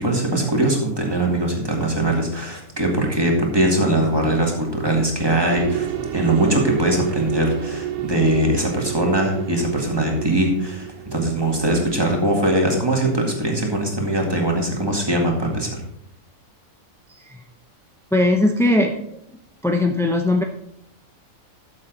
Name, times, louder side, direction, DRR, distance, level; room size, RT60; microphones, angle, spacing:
voice 1, 0.0-5.9 6.1-15.8, right 1 dB, 15° right, 0 dB, 2.1 m, -21 dB
sound 1, 5.5-12.6, right 10 dB, 80° right, 1.3 m, -30 dB
voice 2, 17.1-17.4 18.1-19.0 19.6-20.4, left 2 dB, 5° left, 3 dB, 0.4 m, -19 dB
13.0 x 7.3 x 4.0 m, 0.76 s
omnidirectional pair, 1.5 m